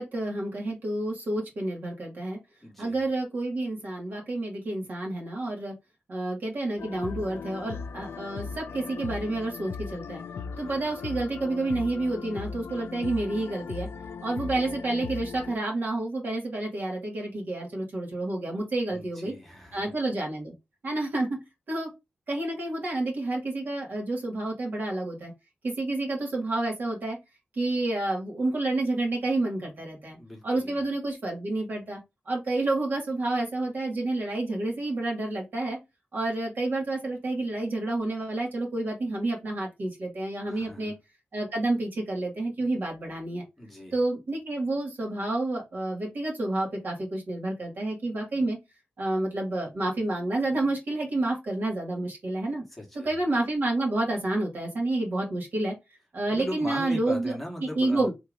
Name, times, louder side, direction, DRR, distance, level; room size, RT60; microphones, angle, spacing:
voice 1, 0.0-2.4 2.8-5.7 6.1-10.2 10.6-13.9 14.2-19.3 19.7-20.5 20.8-21.4 21.7-21.9 22.3-25.3 25.6-27.2 27.5-30.2 30.4-32.0 32.3-35.8 36.1-40.9 41.3-43.4 43.9-48.6 49.0-52.6 53.0-55.7 56.1-57.4 57.8-58.1, right 2 dB, 55° right, 1.9 m, -29 dB
voice 2, 2.6-3.0 10.5-10.9 18.9-19.9 30.2-30.8 40.4-40.9 43.6-44.0 52.7-53.1 56.3-58.1, left 1 dB, 5° left, 1.3 m, -39 dB
sound 1, 6.8-15.5, left 5 dB, 75° left, 0.4 m, -38 dB
3.5 x 2.8 x 4.7 m
wide cardioid pair, 170°, 4 cm